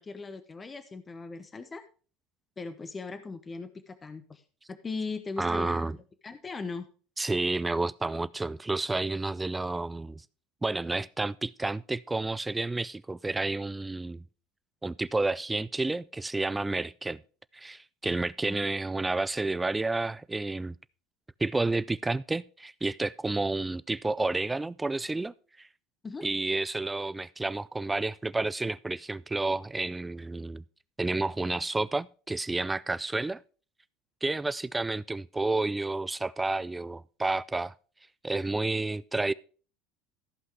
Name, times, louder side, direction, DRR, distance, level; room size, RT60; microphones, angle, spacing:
voice 1, 0.0-1.8 2.6-4.4 4.7-6.9 18.4-18.7 26.0-26.3, left 4 dB, 25° left, 1.0 m, -39 dB
voice 2, 5.4-6.0 7.2-10.2 10.6-14.2 14.8-17.2 17.5-20.8 21.4-25.7 26.2-30.6 31.0-33.4 34.2-37.7 38.2-39.3, right 2 dB, 15° right, 0.4 m, -30 dB
14.5 x 5.6 x 4.8 m
hypercardioid pair, 80°, 0 cm